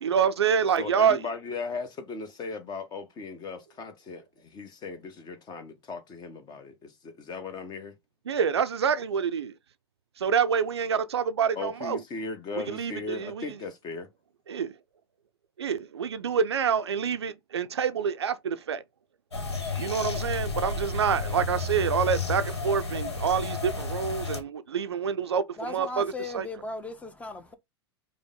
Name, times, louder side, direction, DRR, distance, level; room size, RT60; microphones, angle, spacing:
voice 1, 0.0-1.2 8.3-9.5 10.2-12.0 12.6-13.4 14.5-14.7 15.6-18.8 19.8-26.5, right 7 dB, 80° right, 0.4 m, -27 dB
voice 2, 0.8-7.9 11.6-14.1, left 4 dB, 30° left, 1.0 m, -37 dB
sound 1, 19.3-24.4, left 4 dB, 80° left, 1.1 m, -32 dB
voice 3, 25.6-27.6, left 2 dB, 10° left, 0.7 m, -37 dB
5.1 x 2.2 x 3.6 m
figure-of-eight pair, 90°, 14 cm